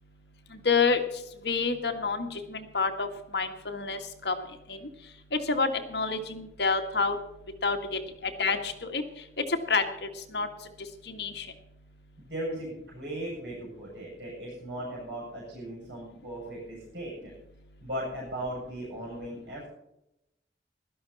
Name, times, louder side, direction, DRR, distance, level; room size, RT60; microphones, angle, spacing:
voice 1, 0.7-1.0 1.4-4.0 4.3-4.4 4.7-4.8 5.5-7.2 7.6-8.0 8.4-9.0 9.7-9.8 10.3-10.5 11.1-11.5, left 4 dB, 70° left, 5 dB, 1.8 m, -28 dB
voice 2, 12.2-17.3 17.8-19.7, right 1 dB, 80° right, -4 dB, 6.9 m, -37 dB
16.0 x 12.5 x 4.2 m, 0.86 s
head